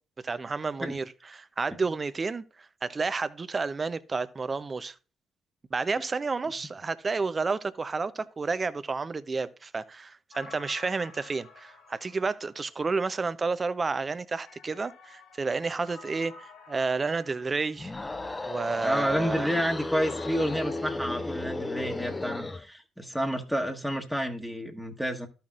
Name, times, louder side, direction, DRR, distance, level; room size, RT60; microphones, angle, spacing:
voice 1, 0.2-4.9 5.7-17.9 18.5-19.5, right 4 dB, 35° right, 0.6 m, -31 dB
sound 1, 10.3-13.1 14.4-18.3 19.9-21.3, left 5 dB, 70° left, 2.8 m, -51 dB
sound 2, 17.7-22.7, left 2 dB, 25° left, 0.6 m, -34 dB
voice 2, 18.8-25.3, equal, ahead, 1.3 m, -30 dB
13.0 x 5.7 x 2.5 m
hypercardioid pair, 50°, 0 cm